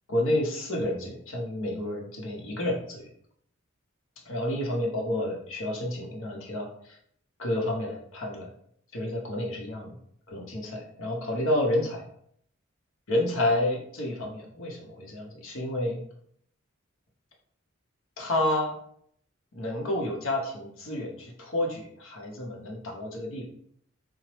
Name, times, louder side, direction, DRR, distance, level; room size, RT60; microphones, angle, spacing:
voice 1, 0.1-3.1 4.3-7.0 7.4-8.5 8.9-10.0 10.3-12.0 13.1-16.0 18.2-18.8 19.5-23.4, left 1 dB, 70° left, 0 dB, 0.7 m, -30 dB
2.9 x 2.0 x 3.1 m, 0.66 s
head